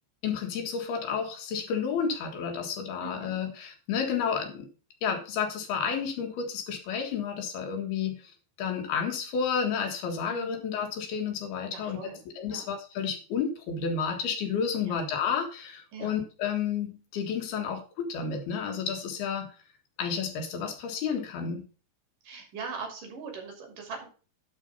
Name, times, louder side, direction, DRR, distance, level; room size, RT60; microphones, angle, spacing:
voice 1, 0.2-4.7 5.0-8.2 8.6-12.0 12.4-19.5 20.0-21.6, left 6 dB, 85° left, 4 dB, 3.7 m, -31 dB
voice 2, 3.0-3.3 10.3-10.6 11.7-12.2 12.5-12.6 14.8-15.0 15.9-16.1 22.2-24.1, right 5 dB, 60° right, 1 dB, 4.2 m, -41 dB
11.0 x 4.6 x 5.5 m, 0.36 s
omnidirectional pair, 4.3 m